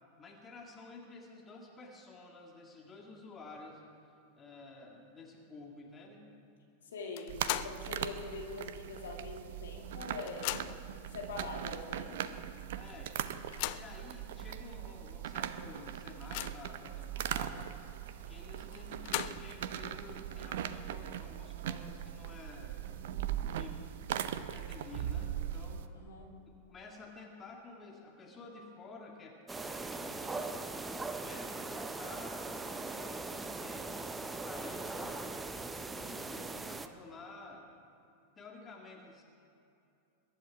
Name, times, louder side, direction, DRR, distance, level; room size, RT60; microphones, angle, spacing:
voice 1, 0.2-3.8 4.4-6.3 12.7-13.2 13.7-17.8 18.3-22.9 23.4-23.8 24.5-25.8 26.5-30.7 31.1-35.3 36.3-37.6 38.4-39.2, left 3 dB, 20° left, 0 dB, 2.1 m, -51 dB
voice 2, 6.8-10.6 11.1-12.2 25.9-26.3 36.0-36.7, left 3 dB, 65° left, 0 dB, 2.5 m, -44 dB
sound 1, 7.2-7.9 8.3-8.4 9.4-9.5 9.8-10.9 11.7-11.8 12.2-12.3 13.3-14.0 14.7-14.8 15.2-15.3 15.7-16.8 18.7-19.6, left 16 dB, 45° left, 0.4 m, -39 dB
sound 2, 7.3-25.9, right 10 dB, 55° right, 0.6 m, -40 dB
sound 3, 29.5-36.9, right 3 dB, 10° right, 0.7 m, -40 dB
22.0 x 10.5 x 4.7 m, 2.7 s
figure-of-eight pair, 90°, 0 cm